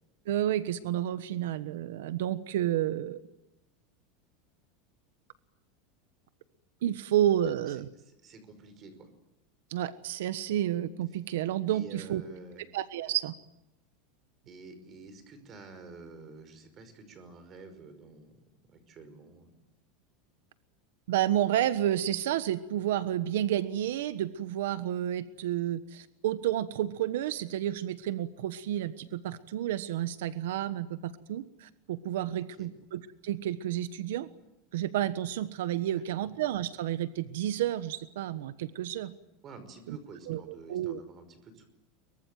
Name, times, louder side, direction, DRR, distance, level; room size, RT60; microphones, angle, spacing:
voice 1, 0.3-3.2 6.8-7.8 9.7-12.2 12.7-13.3 21.1-34.3 34.7-39.1 39.9-40.0 40.3-40.4 40.7-41.0, right 12 dB, 85° right, 13 dB, 1.2 m, -30 dB
voice 2, 7.4-7.8 8.0-9.1 11.7-12.6 14.5-19.5 32.4-32.7 35.9-36.3 39.4-41.7, right 4 dB, 30° right, 10 dB, 5.3 m, -49 dB
24.0 x 23.5 x 9.3 m, 0.91 s
supercardioid pair, 155°, 0 cm